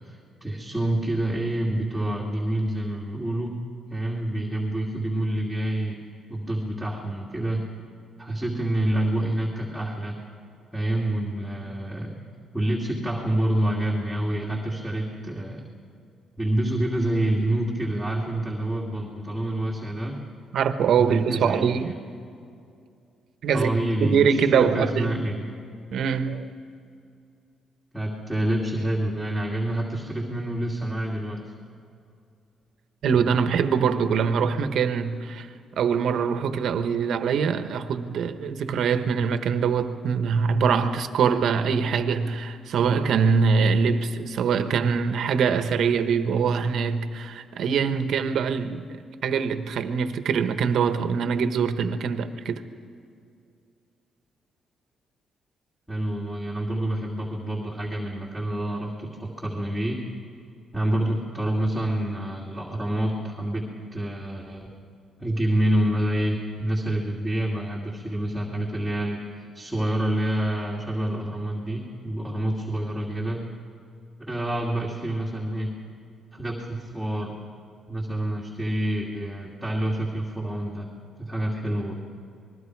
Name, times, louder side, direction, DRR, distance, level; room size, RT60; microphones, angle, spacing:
voice 1, 0.0-3.6 3.9-6.0 6.3-7.6 8.2-10.2 10.7-12.2 12.5-15.7 16.4-20.2 21.0-22.0 23.5-25.5 27.9-31.4 55.9-60.0 60.7-63.6 63.9-64.7 65.2-73.5 74.2-75.7 76.3-77.4 77.9-80.9 81.2-82.0, right 1 dB, ahead, 2.5 m, -27 dB
voice 2, 20.5-21.9 23.4-23.7 24.0-25.1 25.9-26.5 33.0-35.5 35.8-52.6, right 6 dB, 70° right, 1.2 m, -23 dB
27.0 x 21.0 x 4.8 m
cardioid pair, 115°, 0 cm